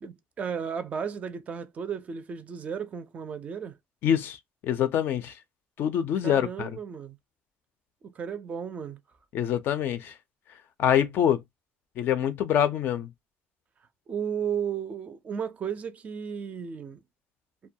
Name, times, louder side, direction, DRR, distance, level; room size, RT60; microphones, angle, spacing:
voice 1, 0.0-3.8 6.2-7.2 8.0-9.0 14.1-17.0, right 7 dB, 30° right, 0.4 m, -34 dB
voice 2, 4.0-4.4 4.6-5.3 5.8-6.8 9.3-10.1 10.8-11.4 12.0-13.1, left 9 dB, 55° left, 0.4 m, -25 dB
2.2 x 2.1 x 2.6 m
cardioid pair, 140°, 4 cm